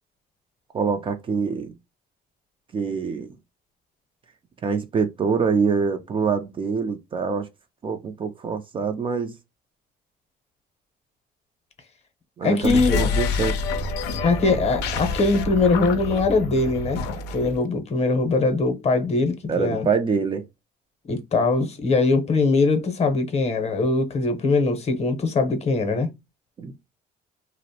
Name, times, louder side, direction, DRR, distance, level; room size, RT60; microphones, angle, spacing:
voice 1, 0.7-1.7 2.7-3.3 4.6-7.5 7.8-9.3 12.4-13.6 19.5-20.4 26.6-26.7, right 5 dB, 30° right, 0.4 m, -25 dB
voice 2, 12.4-13.0 14.2-17.0 17.3-19.9 21.1-26.1, left 3 dB, 40° left, 0.7 m, -21 dB
sound 1, 12.6-17.6, left 4 dB, 85° left, 0.5 m, -27 dB
2.5 x 2.0 x 2.7 m
cardioid pair, 110°, 17 cm